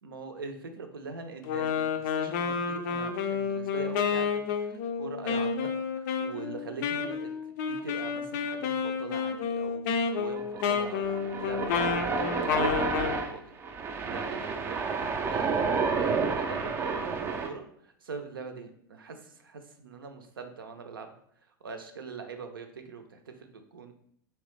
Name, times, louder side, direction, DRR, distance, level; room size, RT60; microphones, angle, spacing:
voice 1, 0.0-13.4 14.0-21.1 21.6-23.9, right 4 dB, 80° right, 6 dB, 0.5 m, -43 dB
Wind instrument woodwind instrument, 1.4-13.2, left 6 dB, 55° left, 0.4 m, -30 dB
sound 1, 10.4-17.5, right 4 dB, 20° right, 0.4 m, -30 dB
3.2 x 3.0 x 3.1 m, 0.65 s
figure-of-eight pair, 90°, 12 cm